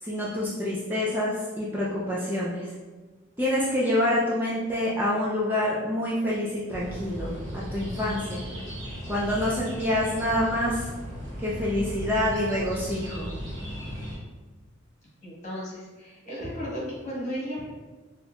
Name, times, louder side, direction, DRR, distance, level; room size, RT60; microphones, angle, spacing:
voice 1, 0.0-2.7 3.4-8.4 9.1-10.9 11.4-13.3, left 1 dB, 10° right, -6 dB, 0.4 m, -27 dB
sound 1, 6.7-14.2, equal, 65° right, 1.1 m, -36 dB
voice 2, 15.2-17.7, equal, 40° left, -7 dB, 1.3 m, -34 dB
4.3 x 2.4 x 2.3 m, 1.3 s
head